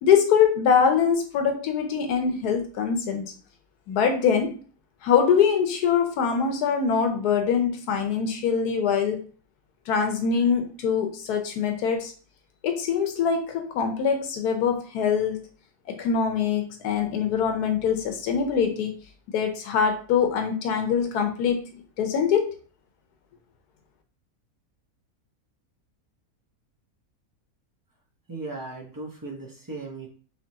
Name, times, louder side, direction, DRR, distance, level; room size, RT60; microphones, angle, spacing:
voice 1, 0.0-3.3 3.9-4.6 5.0-9.2 9.9-12.1 12.6-15.4 16.0-18.9 19.3-21.7 22.0-22.5, left 7 dB, 85° left, 5 dB, 1.3 m, -23 dB
voice 2, 28.3-30.1, right 3 dB, 20° right, -2 dB, 0.6 m, -37 dB
4.8 x 3.1 x 2.8 m, 0.40 s
omnidirectional pair, 1.6 m